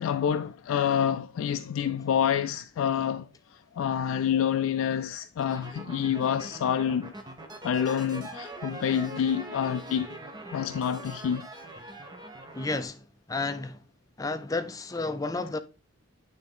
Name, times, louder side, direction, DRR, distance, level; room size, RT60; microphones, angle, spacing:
voice 1, 0.0-3.3 3.8-7.1 7.6-10.2 10.5-11.5, left 8 dB, 90° left, 0.3 m, -27 dB
sound 1, 5.4-12.8, right 2 dB, 20° right, 0.8 m, -42 dB
voice 2, 12.5-13.0 13.3-13.8 14.2-15.6, left 3 dB, 15° left, 0.4 m, -31 dB
8.7 x 3.4 x 3.6 m
head